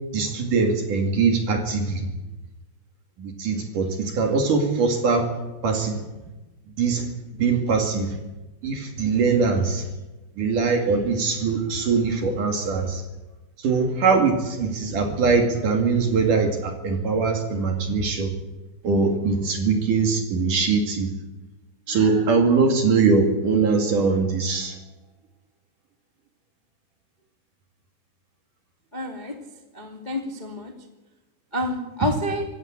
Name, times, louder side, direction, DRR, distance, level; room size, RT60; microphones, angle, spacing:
voice 1, 0.1-2.1 3.2-5.3 5.6-6.0 6.8-7.1 7.4-8.1 8.6-9.8 10.4-13.0 13.6-18.3 18.8-21.1 21.9-24.7, right 4 dB, 50° right, 4 dB, 3.3 m, -22 dB
voice 2, 28.9-29.3 29.7-30.7 31.5-32.4, left 1 dB, 20° left, 3 dB, 1.3 m, -28 dB
25.5 x 15.5 x 8.8 m, 1.1 s
omnidirectional pair, 5.6 m